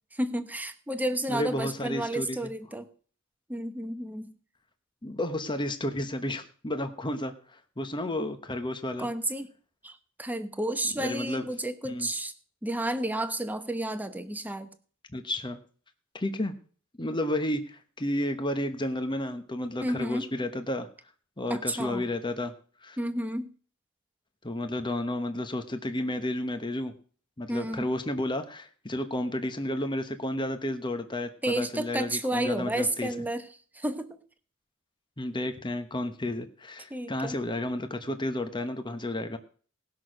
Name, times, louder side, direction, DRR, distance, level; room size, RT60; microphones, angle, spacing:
voice 1, 0.1-2.9 3.5-4.3 9.0-9.5 9.8-12.3 12.6-14.7 19.8-20.2 21.5-22.1 23.0-23.5 27.5-27.9 31.4-33.5 33.7-34.2 36.9-37.4, right 1 dB, 10° right, 9 dB, 1.0 m, -31 dB
voice 2, 1.3-2.5 5.0-9.1 10.9-11.5 11.8-12.1 15.1-15.6 16.1-16.5 17.0-20.9 21.4-22.5 22.8-23.0 24.4-26.9 27.4-33.1 35.2-39.4, left 1 dB, 20° left, 8 dB, 1.1 m, -32 dB
18.5 x 6.3 x 6.4 m, 0.43 s
head